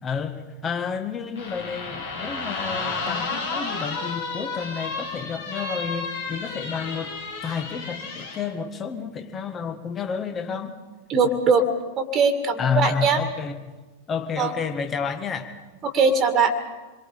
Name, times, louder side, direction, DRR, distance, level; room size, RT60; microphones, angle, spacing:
voice 1, 0.0-7.2 7.4-10.7 12.6-13.7 14.1-15.5, left 6 dB, 25° left, 6 dB, 1.9 m, -30 dB
sound 1, 1.4-8.4, left 4 dB, 60° left, 5.3 m, -32 dB
voice 2, 11.1-11.7 12.0-13.2 14.4-14.5 15.8-16.5, right 4 dB, 30° right, 8 dB, 2.1 m, -20 dB
27.0 x 22.5 x 5.1 m, 1.2 s
figure-of-eight pair, 90°, 0 cm